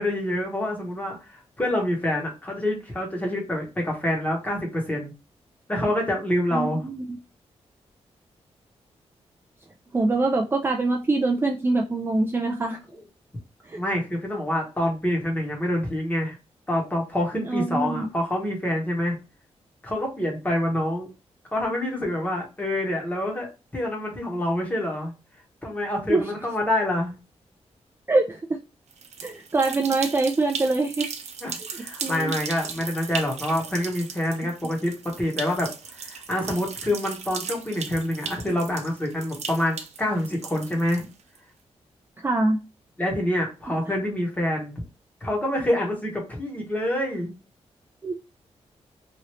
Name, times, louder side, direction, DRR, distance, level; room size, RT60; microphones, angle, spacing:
voice 1, 0.0-5.1 5.7-6.9 13.8-16.4 16.7-19.2 19.8-21.1 21.5-23.5 23.7-25.1 25.6-27.1 31.4-41.1 43.0-44.8 45.2-47.3, left 1 dB, 15° left, -1 dB, 1.1 m, -26 dB
voice 2, 6.5-7.2 9.9-12.8 13.6-13.8 17.5-18.1 26.1-26.3 28.1-28.6 29.2-31.1 32.0-32.4 42.2-42.6 48.0-48.1, right 3 dB, 20° right, 2 dB, 0.4 m, -24 dB
sound 1, 28.9-41.4, right 6 dB, 75° right, 0.6 m, -37 dB
3.0 x 2.6 x 2.9 m, 0.30 s
wide cardioid pair, 155°, 11 cm